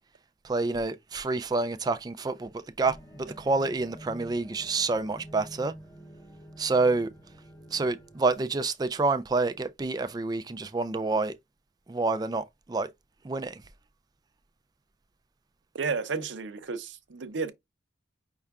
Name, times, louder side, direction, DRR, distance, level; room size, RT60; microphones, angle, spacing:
voice 1, 0.4-2.5 2.8-5.7 6.6-7.1 7.7-11.3 11.9-12.9 13.2-13.6, right 3 dB, 20° right, 0.3 m, -28 dB
sound 1, 2.8-8.3, right 1 dB, 15° left, 0.8 m, -48 dB
voice 2, 15.7-17.5, right 4 dB, 70° right, 0.6 m, -32 dB
5.4 x 2.4 x 3.5 m
head